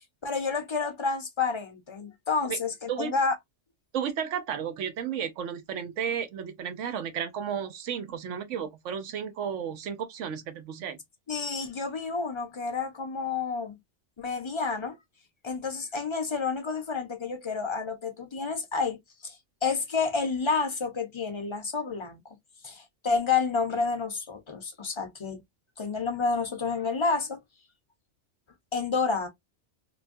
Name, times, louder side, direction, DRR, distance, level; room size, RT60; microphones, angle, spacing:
voice 1, 0.2-3.3 11.3-13.8 14.2-15.0 15.4-19.3 19.6-22.2 22.6-25.4 25.8-27.4 28.7-29.3, left 4 dB, 30° left, 0.6 m, -29 dB
voice 2, 3.9-11.0, right 8 dB, 90° right, 1.0 m, -33 dB
3.0 x 2.2 x 2.5 m
omnidirectional pair, 1.2 m